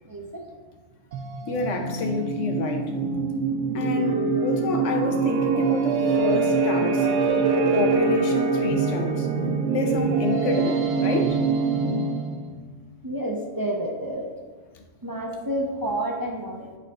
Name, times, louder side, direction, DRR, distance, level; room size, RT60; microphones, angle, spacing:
voice 1, 0.0-0.4 13.0-14.3 15.0-16.8, right 1 dB, 20° right, 0 dB, 0.6 m, -29 dB
sound 1, 1.1-12.5, right 4 dB, 75° right, 1.0 m, -24 dB
voice 2, 1.5-3.0 3.7-7.1 7.5-9.3 9.7-11.4, left 2 dB, 80° left, 4 dB, 1.2 m, -28 dB
11.5 x 4.0 x 3.6 m, 1.4 s
omnidirectional pair, 1.3 m